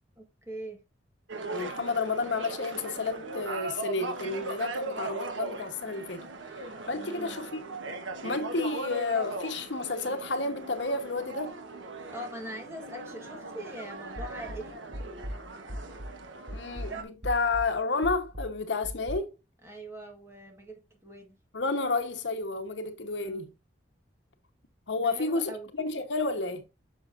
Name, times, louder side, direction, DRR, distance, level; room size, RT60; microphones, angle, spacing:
voice 1, 0.2-0.8 6.9-7.4 12.1-14.8 19.6-21.4 23.2-23.4 25.0-25.7, right 1 dB, 15° right, 1.5 m, -42 dB
sound 1, 1.3-17.0, right 2 dB, 80° right, 1.2 m, -39 dB
voice 2, 1.5-6.3 6.9-7.6 8.2-11.6 16.5-19.3 21.5-23.5 24.9-26.7, left 3 dB, 75° left, 1.1 m, -31 dB
sound 2, 14.2-16.2 16.5-19.1, equal, 55° right, 1.5 m, -39 dB
7.7 x 6.4 x 2.6 m
head